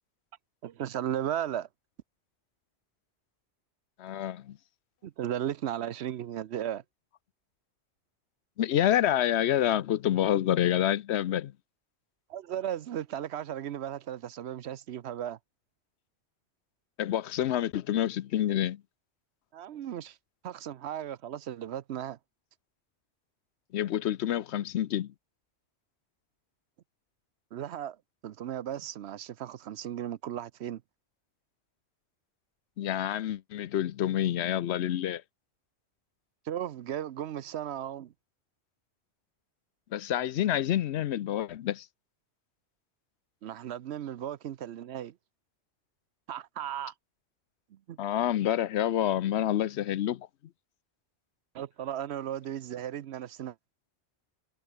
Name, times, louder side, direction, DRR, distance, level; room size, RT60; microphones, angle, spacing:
voice 1, 0.6-1.7 5.0-6.8 12.3-15.4 19.5-20.2 20.4-22.2 27.5-28.0 28.2-30.8 36.5-38.1 43.4-45.2 46.3-46.9 47.7-48.0 51.5-53.6, right 10 dB, 75° right, 0.9 m, -36 dB
voice 2, 4.0-4.6 8.6-11.5 17.0-18.8 23.7-25.1 32.8-35.2 39.9-41.9 48.0-50.3, left 11 dB, 80° left, 0.9 m, -28 dB
omnidirectional pair, 1.1 m